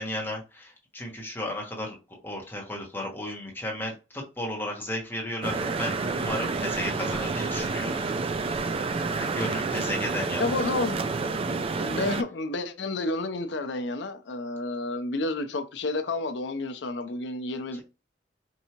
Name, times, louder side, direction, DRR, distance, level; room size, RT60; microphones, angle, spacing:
voice 1, 0.0-2.0 2.2-8.0 8.3-8.7 9.1-10.5, left 1 dB, 10° left, 1.2 m, -34 dB
sound 1, 5.4-12.2, right 4 dB, 30° right, 0.3 m, -29 dB
voice 2, 10.4-11.0 11.8-17.8, left 2 dB, 70° left, 0.6 m, -30 dB
4.6 x 2.7 x 2.9 m
head